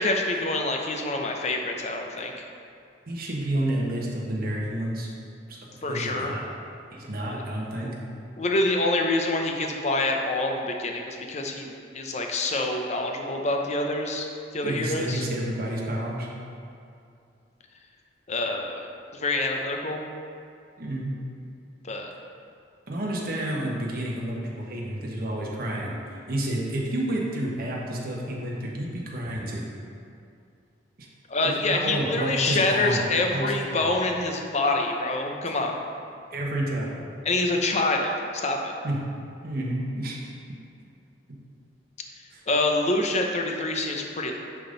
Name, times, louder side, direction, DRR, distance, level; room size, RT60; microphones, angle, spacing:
voice 1, 0.0-2.4 5.8-6.3 7.3-7.4 7.8-7.9 8.4-14.3 14.5-15.3 18.3-18.9 19.1-20.0 21.8-22.1 31.3-35.8 37.2-38.7 42.5-44.3, left 2 dB, 40° left, 2 dB, 0.6 m, -26 dB
voice 2, 3.1-5.1 5.9-6.5 6.9-7.9 14.6-16.3 20.8-21.1 22.9-29.7 31.0-31.1 31.4-33.0 33.3-33.5 33.8-33.9 36.3-37.0 38.8-39.0 39.4-40.3 42.3-42.4, right 1 dB, 55° right, -3 dB, 1.1 m, -30 dB
10.0 x 3.7 x 3.9 m, 2.5 s
head